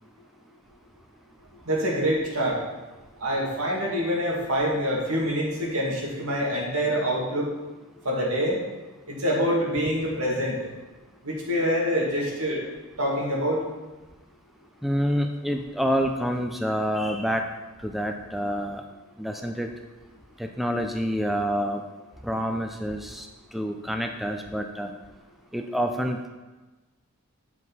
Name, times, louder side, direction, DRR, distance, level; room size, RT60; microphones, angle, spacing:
voice 1, 1.7-2.6 3.2-7.5 8.0-8.6 9.1-10.7 11.2-12.6 13.0-13.6, equal, 80° right, -3 dB, 2.3 m, -25 dB
voice 2, 14.8-17.5 17.8-18.8 19.2-19.7 20.4-21.8 22.2-24.9 25.5-26.3, equal, ahead, 4 dB, 0.4 m, -27 dB
7.6 x 7.4 x 4.1 m, 1.2 s
head